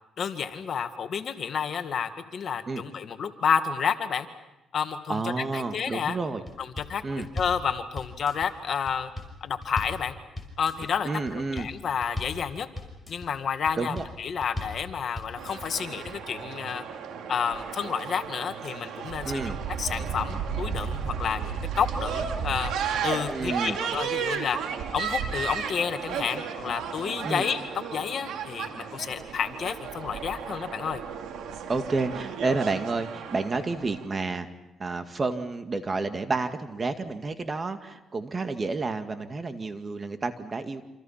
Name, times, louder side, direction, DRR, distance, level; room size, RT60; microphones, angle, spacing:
voice 1, 0.2-4.3 4.7-5.2 5.5-6.2 6.6-9.1 9.4-10.1 10.6-12.7 13.1-16.8 17.3-22.7 23.0-24.6 24.9-27.6 27.9-31.0, left 7 dB, 55° left, 7 dB, 2.0 m, -30 dB
voice 2, 5.1-6.4 7.0-7.3 11.0-11.7 13.8-14.0 19.2-19.6 23.2-23.8 27.2-27.5 31.7-34.5 34.8-40.8, right 3 dB, 35° right, 8 dB, 2.0 m, -30 dB
sound 1, 6.5-6.9 7.2-7.6 8.0-8.5 8.9-9.3 9.6-10.0 10.4-10.9 11.3-11.7 12.0-12.4 12.8-13.3 13.7-14.1 14.4-14.8 15.2-15.7 16.1-16.2, left 2 dB, 10° left, 6.0 m, -37 dB
sound 2, 15.4-34.1, right 7 dB, 80° right, 2.5 m, -34 dB
27.5 x 27.0 x 5.9 m, 0.93 s
cardioid pair, 90°, 0 cm